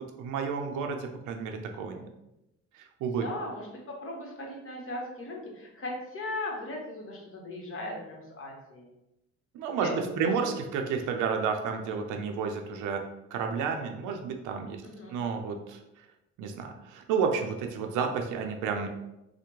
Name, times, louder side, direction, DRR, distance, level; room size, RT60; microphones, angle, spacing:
voice 1, 0.0-2.1 2.7-3.3 9.5-13.0 13.3-14.8 15.1-15.8 16.4-18.9, right 6 dB, 90° right, 4 dB, 0.5 m, -31 dB
voice 2, 3.1-8.9 9.8-10.3 14.8-15.1, left 1 dB, 45° left, -1 dB, 1.0 m, -38 dB
3.3 x 2.1 x 3.0 m, 0.89 s
cardioid pair, 90°, 30 cm